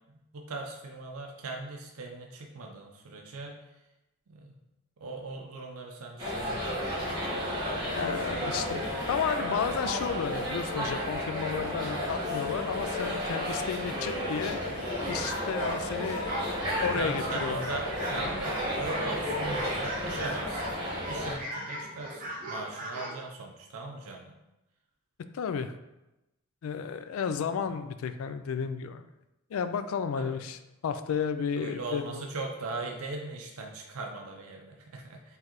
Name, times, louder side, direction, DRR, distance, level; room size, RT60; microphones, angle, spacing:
voice 1, 0.1-3.6 4.3-4.5 5.0-7.3 8.3-8.5 17.0-20.7 21.1-24.3 30.2-30.4 31.6-35.4, right 3 dB, 80° right, 2 dB, 0.5 m, -39 dB
sound 1, 6.2-21.3, equal, 20° right, 1.2 m, -32 dB
voice 2, 7.8-8.8 9.1-14.8 15.1-17.7 25.3-25.7 26.6-29.0 29.5-32.3, left 6 dB, 75° left, 10 dB, 0.3 m, -33 dB
sound 2, 15.0-18.4 18.8-20.7 21.0-23.2, right 1 dB, 35° right, 0.9 m, -39 dB
4.7 x 3.3 x 3.0 m, 0.96 s
head